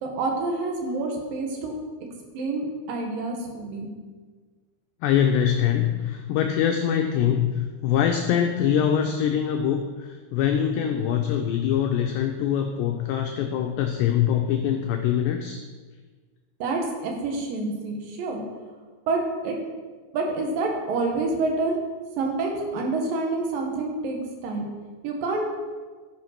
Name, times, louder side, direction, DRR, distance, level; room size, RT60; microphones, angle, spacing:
voice 1, 0.0-1.7 2.3-3.9 16.6-18.4 19.1-19.6 20.1-21.8 22.2-24.6 25.0-25.5, right 3 dB, 60° right, 1 dB, 2.6 m, -27 dB
voice 2, 5.0-15.6, left 9 dB, 85° left, 4 dB, 2.4 m, -23 dB
13.0 x 6.3 x 5.9 m, 1.4 s
omnidirectional pair, 5.7 m